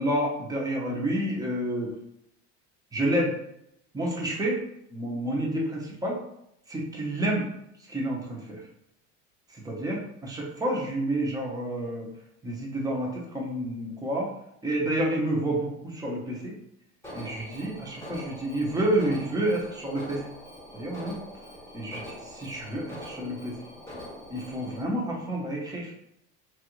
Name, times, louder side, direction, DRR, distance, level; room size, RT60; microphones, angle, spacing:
voice 1, 0.0-1.9 2.9-3.4 3.9-4.6 4.9-6.2 6.7-7.5 7.9-8.6 9.5-12.1 12.4-14.3 14.6-16.5 17.1-20.3 20.7-21.2 21.7-23.6 24.3-25.9, right 1 dB, 10° right, -2 dB, 0.8 m, -29 dB
Alarm, 17.0-24.8, equal, 10° left, 1.2 m, -43 dB
3.2 x 2.5 x 3.0 m, 0.78 s
supercardioid pair, 125°, 33 cm